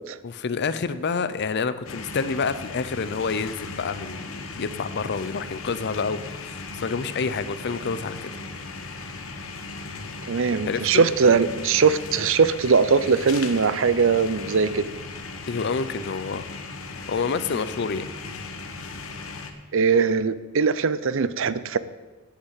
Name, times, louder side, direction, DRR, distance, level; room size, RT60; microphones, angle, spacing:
voice 1, 0.2-8.3 10.7-11.0 15.5-16.5 17.1-18.1, left 5 dB, 55° left, 13 dB, 0.6 m, -28 dB
sound 1, 1.8-19.5, left 3 dB, 70° left, 1.1 m, -37 dB
voice 2, 10.3-14.9 19.7-21.8, right 5 dB, 65° right, 15 dB, 0.6 m, -21 dB
8.7 x 8.2 x 8.1 m, 1.2 s
head